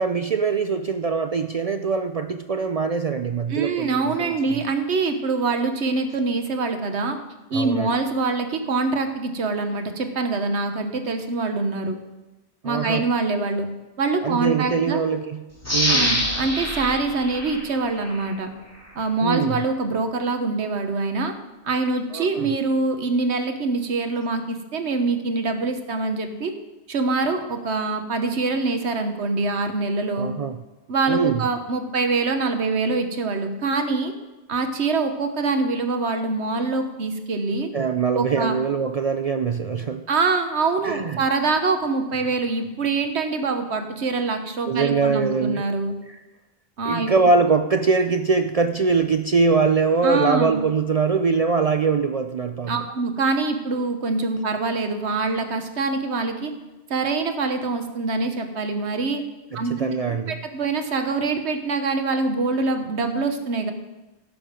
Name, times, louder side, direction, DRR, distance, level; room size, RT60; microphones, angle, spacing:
voice 1, 0.0-4.6 7.5-7.9 12.6-13.1 14.2-15.4 15.7-16.3 19.2-19.6 22.1-22.5 30.2-30.6 31.1-31.5 37.7-40.0 40.8-41.2 44.7-45.7 46.1-46.2 46.8-52.8 59.5-60.4, right 4 dB, 50° right, 8 dB, 0.4 m, -23 dB
voice 2, 3.5-7.2 7.5-12.0 12.6-13.7 14.0-15.0 15.9-18.5 19.0-21.3 21.6-26.5 26.9-30.3 30.9-34.1 34.5-37.7 38.1-38.6 40.1-45.9 46.8-47.1 50.0-50.6 52.7-56.5 56.9-59.2 59.5-59.9 60.3-63.7, right 3 dB, 90° right, 7 dB, 1.4 m, -24 dB
sound 1, 15.6-18.3 18.8-18.9, left 1 dB, 15° left, 2.0 m, -25 dB
16.5 x 7.0 x 5.1 m, 1.1 s
omnidirectional pair, 1.1 m